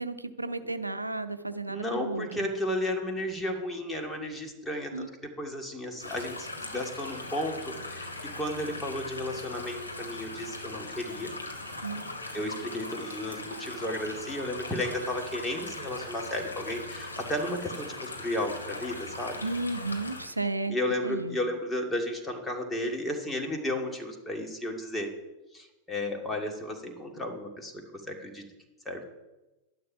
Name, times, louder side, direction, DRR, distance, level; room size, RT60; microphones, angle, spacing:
voice 1, 0.0-2.5 4.9-5.1 11.8-12.1 19.4-20.8 21.0-21.4, right 2 dB, 85° right, 10 dB, 0.7 m, -33 dB
voice 2, 1.7-11.3 12.3-19.4 20.7-25.1 25.5-28.4 28.9-29.0, left 1 dB, 10° left, 1 dB, 2.2 m, -33 dB
sound 1, 6.0-20.3, left 2 dB, 85° left, 1.6 m, -40 dB
12.0 x 11.0 x 5.7 m, 1.1 s
figure-of-eight pair, 90°, 0 cm